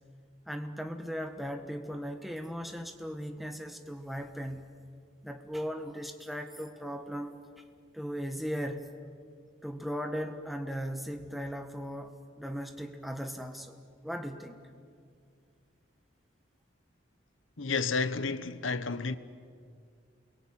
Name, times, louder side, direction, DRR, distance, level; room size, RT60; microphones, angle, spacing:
voice 1, 0.5-4.7 5.2-7.6 7.9-8.9 9.6-13.8 14.0-14.6, equal, ahead, 1.5 m, -37 dB
voice 2, 17.6-19.2, left 4 dB, 80° left, 1.1 m, -31 dB
29.5 x 22.5 x 9.0 m
head